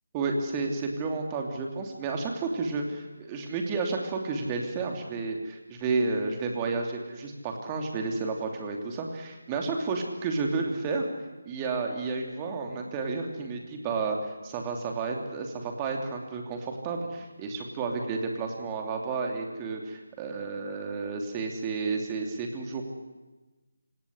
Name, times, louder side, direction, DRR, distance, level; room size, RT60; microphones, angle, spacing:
voice 1, 0.1-11.1 11.4-14.2 14.4-22.8, right 4 dB, 20° right, 2 dB, 3.0 m, -31 dB
27.5 x 18.0 x 10.0 m, 1.2 s
figure-of-eight pair, 155°, 0 cm